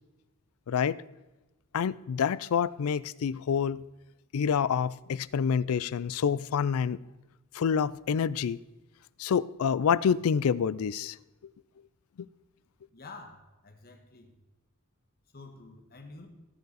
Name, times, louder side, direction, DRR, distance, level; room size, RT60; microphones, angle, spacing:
voice 1, 0.7-1.0 1.7-3.8 4.3-7.0 7.5-8.6 9.2-11.2, left 7 dB, 80° left, 0.4 m, -27 dB
voice 2, 12.9-14.3 15.3-16.3, left 3 dB, 45° left, 1.5 m, -48 dB
17.5 x 6.7 x 4.1 m
head